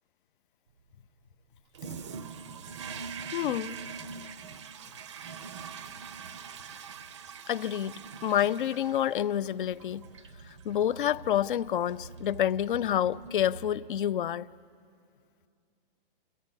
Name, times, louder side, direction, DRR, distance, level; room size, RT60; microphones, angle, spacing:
Toilet flush, 1.7-14.1, right 6 dB, 30° right, 0.5 m, -44 dB
voice 1, 3.3-3.8 7.5-10.0 10.6-14.5, left 10 dB, 60° left, 0.5 m, -28 dB
28.5 x 14.5 x 9.7 m
hypercardioid pair, 175°, 29 cm